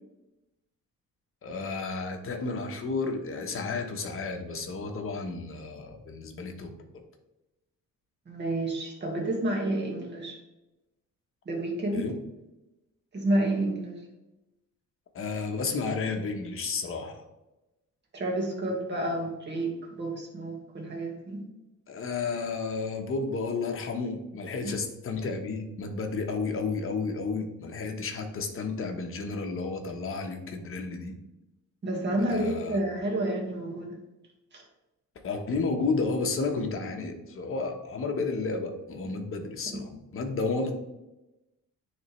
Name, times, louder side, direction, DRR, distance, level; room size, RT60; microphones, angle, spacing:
voice 1, 1.4-7.0 11.9-12.2 15.1-17.2 21.9-31.2 32.3-32.8 35.2-40.7, left 4 dB, 40° left, 4 dB, 0.9 m, -32 dB
voice 2, 8.3-10.4 11.5-12.0 13.1-14.0 18.1-21.4 24.6-24.7 31.8-34.0 34.5-34.6 39.7-39.8, right 1 dB, 35° right, -1 dB, 1.6 m, -30 dB
9.7 x 3.4 x 3.1 m, 0.98 s
cardioid pair, 145°, 32 cm